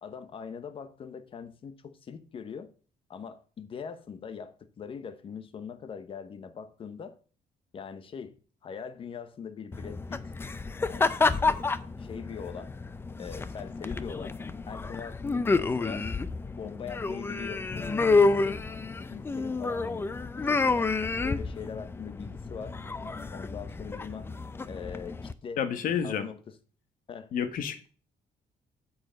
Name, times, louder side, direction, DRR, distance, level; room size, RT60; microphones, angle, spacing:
voice 1, 0.0-2.7 3.1-7.2 7.7-10.3 10.9-11.1 11.5-11.7 12.0-12.7 13.2-16.1 16.6-17.7 18.1-20.1 20.4-20.9 21.2-22.8 23.3-24.3 24.7-25.6 25.9-26.6 27.1-27.3, left 6 dB, 35° left, 0.9 m, -42 dB
sound 1, 9.7-25.3, left 3 dB, 15° left, 0.5 m, -29 dB
voice 2, 25.6-26.3 27.3-27.9, left 8 dB, 65° left, 1.2 m, -30 dB
9.3 x 4.7 x 7.5 m
cardioid pair, 165°, 15 cm